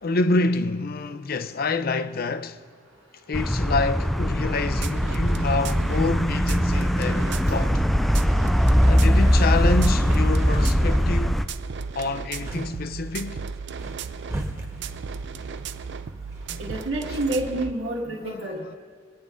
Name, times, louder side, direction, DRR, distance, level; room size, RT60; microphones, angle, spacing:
voice 1, 0.0-2.6 3.3-7.8 8.9-11.4 11.9-13.4 16.5-16.6 18.2-18.8, left 3 dB, 50° left, 0.6 m, -27 dB
sound 1, 3.3-11.5, equal, ahead, 0.3 m, -21 dB
sound 2, 4.4-17.7, right 5 dB, 65° right, 0.5 m, -35 dB
sound 3, 9.3-17.6, right 1 dB, 15° right, 1.4 m, -39 dB
voice 2, 16.6-18.6, right 1 dB, 85° right, 1.7 m, -28 dB
23.5 x 9.4 x 3.7 m
head